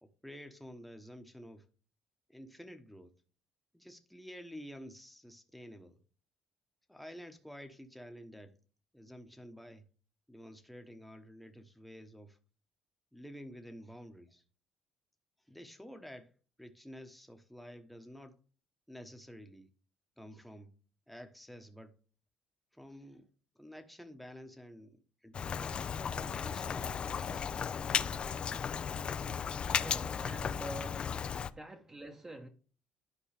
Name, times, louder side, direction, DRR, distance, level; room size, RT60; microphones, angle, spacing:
voice 1, 0.0-1.7 2.3-3.1 3.7-6.0 6.9-8.6 8.9-9.9 10.3-12.4 13.1-14.4 15.4-16.3 16.6-18.4 18.9-19.7 20.2-20.7 21.1-22.0 22.7-23.3 23.5-25.7 26.2-27.6, equal, ahead, 1.1 m, -50 dB
Rain, 25.3-31.5, left 7 dB, 40° left, 0.4 m, -35 dB
voice 2, 29.7-31.0 31.5-32.5, right 1 dB, 20° right, 1.1 m, -46 dB
11.5 x 4.6 x 3.4 m
cardioid pair, 95°, 3 cm